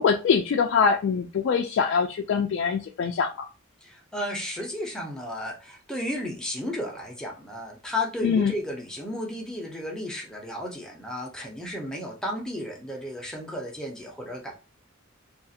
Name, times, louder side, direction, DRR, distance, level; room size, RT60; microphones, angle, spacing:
voice 1, 0.0-3.5 8.2-8.5, left 6 dB, 60° left, 2 dB, 0.3 m, -23 dB
voice 2, 3.8-14.5, left 1 dB, 5° left, -1 dB, 0.6 m, -33 dB
2.4 x 2.4 x 2.7 m, 0.32 s
head